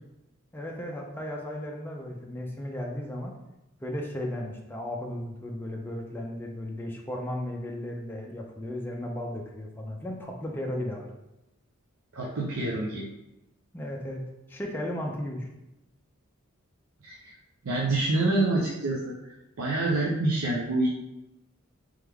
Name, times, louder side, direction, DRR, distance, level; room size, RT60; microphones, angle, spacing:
voice 1, 0.5-3.4 3.8-11.1 13.7-14.2 14.5-15.5, left 1 dB, 10° left, -1 dB, 0.4 m, -35 dB
voice 2, 12.1-13.1 17.0-17.3 17.6-20.9, right 2 dB, 85° right, -3 dB, 0.6 m, -27 dB
3.5 x 3.3 x 3.4 m, 0.91 s
head